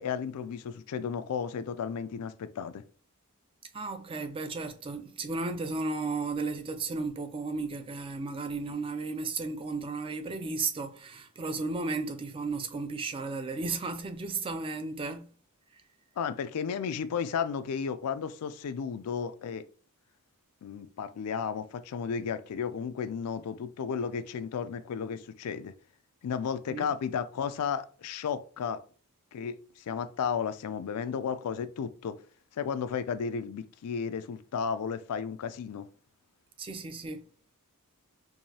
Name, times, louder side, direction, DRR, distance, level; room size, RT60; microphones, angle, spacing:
voice 1, 0.0-2.8 16.2-19.6 20.6-25.7 26.2-28.8 29.3-32.2 32.5-35.9, left 6 dB, 85° left, 0.4 m, -33 dB
voice 2, 3.7-15.3 15.7-15.8 26.7-26.9 36.6-37.3, right 3 dB, 25° right, 0.3 m, -34 dB
4.7 x 2.6 x 2.7 m
head